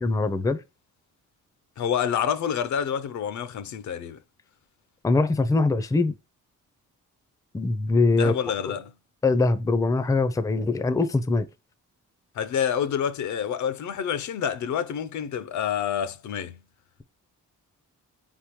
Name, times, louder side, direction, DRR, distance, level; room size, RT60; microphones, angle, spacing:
voice 1, 0.0-0.6 5.0-6.1 7.5-8.3 9.2-11.5, left 3 dB, 10° left, 0.4 m, -22 dB
voice 2, 1.8-4.2 8.2-8.9 12.3-16.6, left 8 dB, 70° left, 0.5 m, -28 dB
4.6 x 3.6 x 3.0 m
cardioid pair, 110°, 31 cm